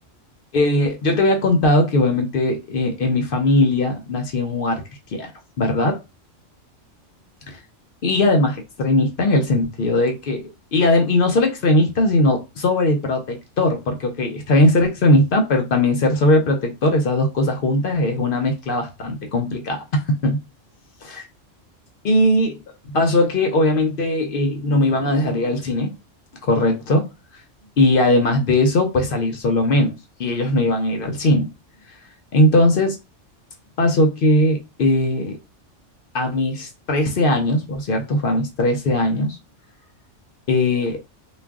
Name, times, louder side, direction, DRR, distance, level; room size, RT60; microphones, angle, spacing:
voice 1, 0.5-4.8 5.1-5.3 5.6-6.0 8.0-10.4 10.7-20.4 21.0-21.3 22.0-22.6 22.9-25.9 26.4-27.1 27.8-29.9 30.2-31.5 32.3-33.0 33.8-35.4 36.1-39.4 40.5-41.0, left 1 dB, 60° left, 4 dB, 0.6 m, -19 dB
2.4 x 2.2 x 3.4 m, 0.26 s
omnidirectional pair, 1.3 m